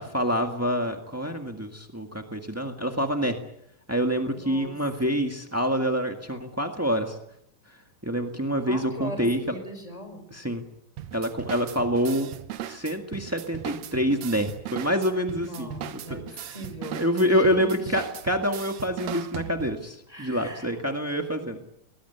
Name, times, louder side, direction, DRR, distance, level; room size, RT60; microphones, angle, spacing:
voice 1, 0.0-3.4 3.9-7.2 8.0-9.4 10.3-10.6 11.1-12.3 12.7-15.7 16.1-16.2 17.0-21.6, equal, 20° right, 4 dB, 0.4 m, -26 dB
voice 2, 4.3-4.8 8.6-10.2 15.4-16.2 16.5-18.0 20.1-20.8, equal, 10° left, 6 dB, 4.9 m, -39 dB
sound 1, 11.0-19.9, right 11 dB, 65° right, 2.0 m, -38 dB
22.5 x 20.0 x 8.1 m, 0.74 s
omnidirectional pair, 3.8 m